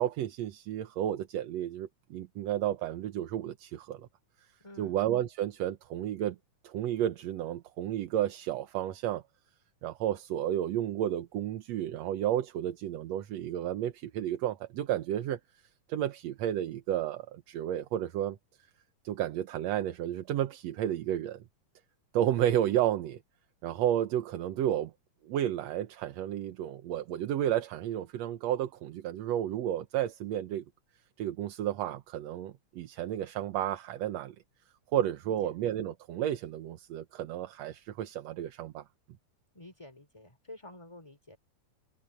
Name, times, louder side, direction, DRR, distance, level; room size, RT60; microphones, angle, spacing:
voice 1, 0.0-4.1 4.8-6.4 6.6-9.2 9.8-15.4 15.9-18.4 19.0-21.4 22.1-23.2 23.6-24.9 25.2-30.6 31.2-34.4 34.9-38.8, right 11 dB, 65° right, 1.9 m, -32 dB
voice 2, 4.6-5.0 35.3-35.4 39.5-41.4, left 1 dB, 10° left, 3.4 m, -50 dB
omnidirectional pair, 3.6 m